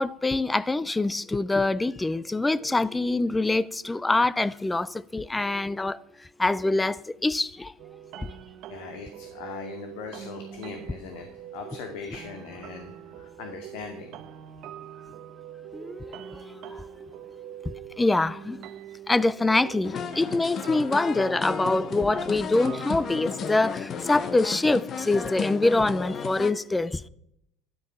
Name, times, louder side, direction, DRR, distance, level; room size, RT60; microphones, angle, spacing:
voice 1, 0.0-6.0 6.4-7.7 8.2-8.3 18.0-18.6 19.1-27.0, left 2 dB, 10° left, 0.4 m, -24 dB
sound 1, 7.8-23.7, right 11 dB, 50° right, 0.9 m, -44 dB
voice 2, 8.7-14.1, left 6 dB, 70° left, 2.2 m, -40 dB
Guitar, 15.7-19.6, right 2 dB, 5° right, 1.8 m, -47 dB
sound 2, 19.8-26.5, left 6 dB, 30° left, 0.8 m, -33 dB
12.5 x 11.0 x 5.8 m
cardioid pair, 140°, 0 cm